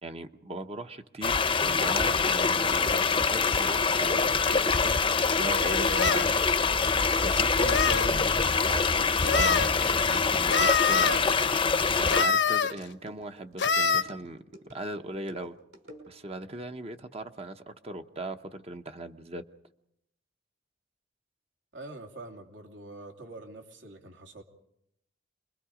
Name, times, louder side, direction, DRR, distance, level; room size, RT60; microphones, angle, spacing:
voice 1, 0.0-5.0 5.4-6.4 7.2-11.2 11.9-14.4 14.7-15.6 16.1-19.4, right 2 dB, 35° right, 0.9 m, -39 dB
sound 1, 1.2-12.3, left 4 dB, 25° left, 0.7 m, -25 dB
sound 2, 4.4-4.6 5.3-6.3 7.3-8.1 9.2-9.7 10.5-11.2 12.1-12.7 13.6-14.0, left 5 dB, 75° left, 1.0 m, -26 dB
sound 3, 9.9-16.4, equal, 60° right, 5.4 m, -51 dB
voice 2, 21.7-24.4, right 2 dB, 75° right, 2.8 m, -45 dB
28.5 x 22.0 x 5.0 m
head